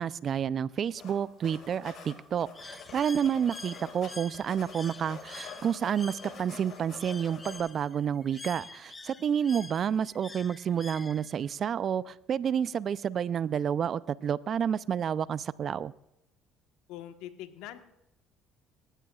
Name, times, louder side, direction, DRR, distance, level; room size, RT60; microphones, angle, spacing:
voice 1, 0.0-15.9, right 8 dB, 50° right, 19 dB, 0.5 m, -30 dB
sound 1, 0.9-1.1 1.4-4.1 4.3-7.6, left 6 dB, 55° left, 7.6 m, -46 dB
Bird, 2.5-11.5, left 3 dB, 25° left, 0.9 m, -47 dB
voice 2, 16.9-17.8, left 12 dB, 70° left, 7 dB, 1.4 m, -43 dB
29.0 x 15.0 x 2.5 m, 0.86 s
hypercardioid pair, 55°, 0 cm